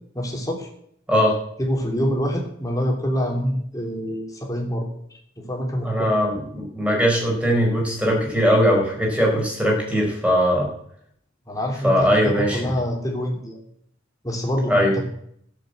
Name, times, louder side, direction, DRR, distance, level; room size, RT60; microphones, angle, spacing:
voice 1, 0.1-0.7 1.6-4.9 5.5-6.1 11.5-13.6 14.2-15.0, equal, 20° left, 0 dB, 3.2 m, -26 dB
voice 2, 5.8-10.7 11.8-12.7 14.7-15.0, equal, 5° right, -2 dB, 4.9 m, -20 dB
14.0 x 8.0 x 7.9 m, 0.68 s
head